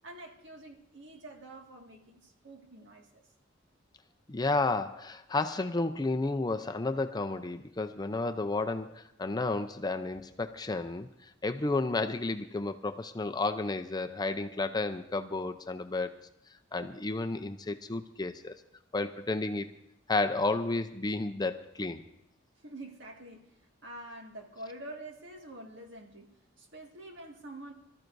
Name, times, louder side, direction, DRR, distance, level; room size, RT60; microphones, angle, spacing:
voice 1, 0.0-3.2 22.6-23.5 23.8-26.3 26.6-27.7, right 1 dB, 65° right, 2 dB, 1.9 m, -47 dB
voice 2, 4.3-11.1 11.4-16.2 16.7-18.6 18.9-19.7 20.1-22.0, left 3 dB, 20° left, 8 dB, 0.5 m, -32 dB
25.0 x 13.5 x 2.6 m, 0.81 s
head